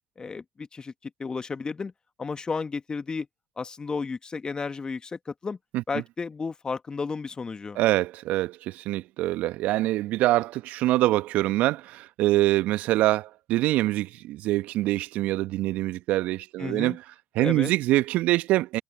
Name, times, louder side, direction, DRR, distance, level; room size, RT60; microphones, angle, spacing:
voice 1, 0.2-0.9 1.2-1.9 2.2-3.3 3.6-5.6 5.9-7.8 16.6-17.0 17.4-17.7, left 4 dB, 30° left, 2.1 m, -33 dB
voice 2, 7.7-17.0 17.3-18.8, right 16 dB, 65° right, 1.4 m, -24 dB
figure-of-eight pair, 50°, 3 cm